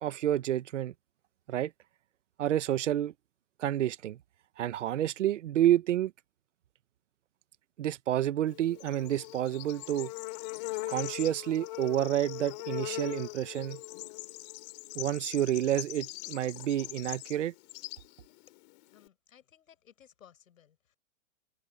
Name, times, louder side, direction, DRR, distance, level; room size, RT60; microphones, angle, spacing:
voice 1, 0.0-0.9 1.5-1.7 2.4-3.1 3.6-4.2 4.6-6.1 7.8-10.1 10.9-13.8 14.9-17.5, right 12 dB, 65° right, 1.2 m, -29 dB
Bird / Insect, 8.5-19.1, left 25 dB, 30° left, 3.2 m, -41 dB
voice 2, 18.9-21.0, left 9 dB, 85° left, 7.8 m, -59 dB
open air
hypercardioid pair, 175°, 40 cm